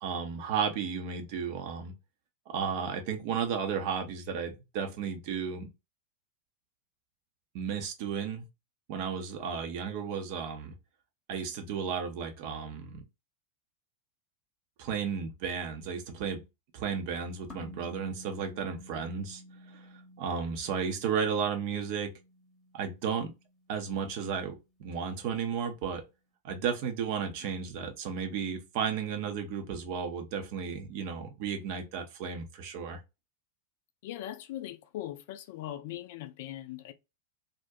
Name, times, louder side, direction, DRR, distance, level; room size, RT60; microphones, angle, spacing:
voice 1, 0.0-1.9 2.5-5.7 7.5-8.5 8.9-10.7 11.3-13.0 14.8-16.4 16.7-19.4 19.7-19.9 20.2-22.1 22.7-23.3 23.7-26.0 26.4-33.0, right 6 dB, 45° right, 0.6 m, -33 dB
sound 1, 17.5-24.0, left 1 dB, 25° left, 0.8 m, -52 dB
voice 2, 34.0-36.9, left 13 dB, 50° left, 0.4 m, -40 dB
2.4 x 2.1 x 2.6 m
figure-of-eight pair, 90°, 0 cm